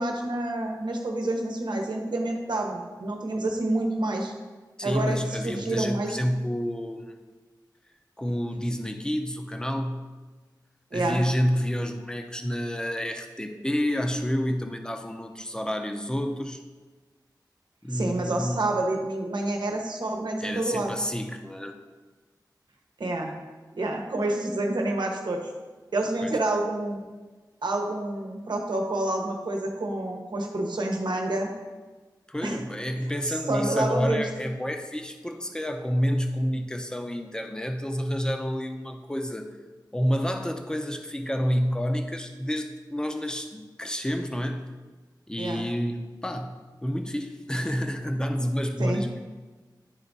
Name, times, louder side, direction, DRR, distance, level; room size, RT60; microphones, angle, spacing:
voice 1, 0.0-4.3 4.8-6.2 10.9-11.2 17.9-20.9 23.0-23.3 23.7-25.4 25.9-27.0 27.6-31.5 32.4-32.6 33.5-34.3 45.4-45.6 48.8-49.0, right 2 dB, 75° right, 2 dB, 1.0 m, -28 dB
voice 2, 4.8-7.2 8.2-10.0 10.9-16.6 17.8-18.7 20.4-21.8 26.2-26.4 32.3-39.6 39.9-44.8 45.3-49.3, equal, 10° left, 5 dB, 0.7 m, -29 dB
10.5 x 3.5 x 4.0 m, 1.3 s
wide cardioid pair, 60°, 8 cm